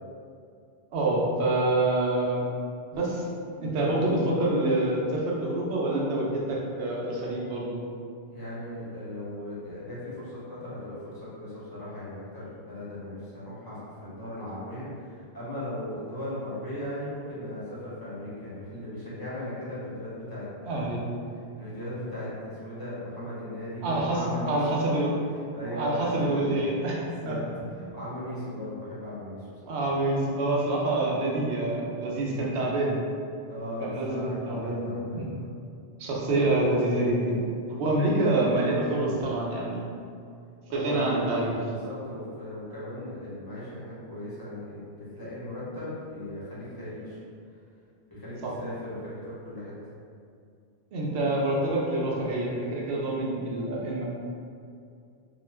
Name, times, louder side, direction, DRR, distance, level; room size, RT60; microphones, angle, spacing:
voice 1, 0.9-2.4 2.9-3.2 3.6-7.8 20.7-21.0 23.8-25.1 25.7-27.0 27.2-27.4 27.8-27.9 29.7-33.0 33.8-35.3 36.0-37.4 37.8-39.9 40.7-41.7 48.4-48.5 50.9-54.1, right 2 dB, 90° right, -3 dB, 0.9 m, -27 dB
voice 2, 8.3-21.0 21.6-24.8 25.1-25.2 25.5-26.7 27.0-27.4 27.9-29.8 33.5-35.4 36.0-36.3 37.9-38.0 40.7-41.1 41.7-47.2 48.1-49.7, left 1 dB, 25° left, -10 dB, 0.8 m, -37 dB
2.4 x 2.2 x 3.1 m, 2.4 s
omnidirectional pair, 1.1 m